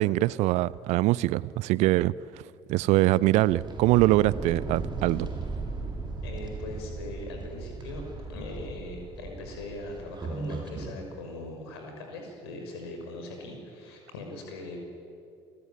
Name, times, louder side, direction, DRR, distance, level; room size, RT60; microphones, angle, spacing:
voice 1, 0.0-2.1 2.7-5.3, right 17 dB, 55° right, 0.6 m, -23 dB
sound 1, 3.4-11.0, right 3 dB, 35° right, 5.9 m, -37 dB
voice 2, 6.2-8.0 8.3-14.8, left 2 dB, 70° left, 6.1 m, -40 dB
28.5 x 22.0 x 9.0 m
figure-of-eight pair, 50°, 14 cm